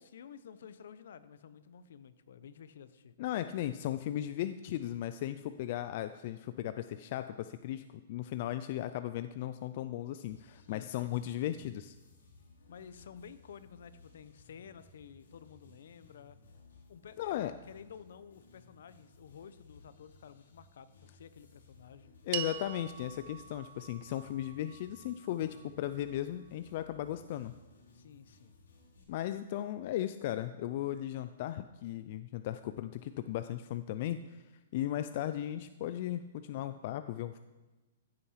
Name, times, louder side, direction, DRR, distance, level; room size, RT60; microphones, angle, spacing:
voice 1, 0.0-3.1 10.4-11.2 12.7-16.5 16.9-22.1 27.9-28.5, left 7 dB, 65° left, 14 dB, 0.9 m, -52 dB
voice 2, 3.2-11.9 17.2-17.5 22.3-27.5 29.1-34.5 34.7-37.4, left 12 dB, 40° left, 11 dB, 0.4 m, -36 dB
sound 1, 10.3-29.0, left 3 dB, 85° left, 3.6 m, -60 dB
sound 2, 22.3-26.8, right 12 dB, 35° right, 0.7 m, -44 dB
14.5 x 8.7 x 5.7 m, 1.2 s
hypercardioid pair, 170°, 0 cm